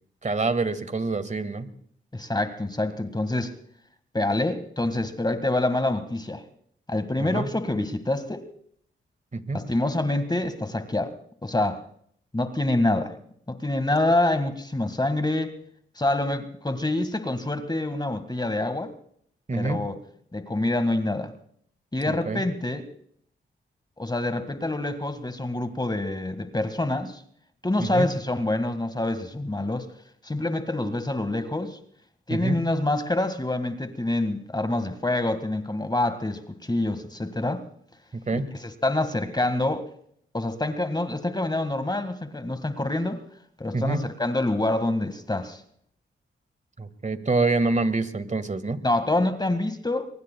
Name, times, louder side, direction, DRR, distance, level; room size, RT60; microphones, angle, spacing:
voice 1, 0.2-1.7 7.2-7.5 9.3-9.6 19.5-19.8 22.1-22.4 27.8-28.1 32.3-32.6 38.3-38.5 43.7-44.0 46.8-48.8, right 3 dB, 35° right, 12 dB, 1.8 m, -26 dB
voice 2, 2.1-3.5 4.1-6.4 6.9-8.5 9.5-11.1 11.4-11.8 12.3-13.1 13.5-15.6 16.0-18.9 19.5-20.0 20.3-21.3 21.9-22.8 24.0-27.2 27.6-29.9 30.2-31.8 32.3-37.6 38.4-39.8 40.3-43.2 43.6-45.6 48.8-50.1, left 2 dB, 20° left, 10 dB, 1.8 m, -26 dB
24.5 x 23.0 x 2.3 m, 0.63 s
cardioid pair, 50°, 21 cm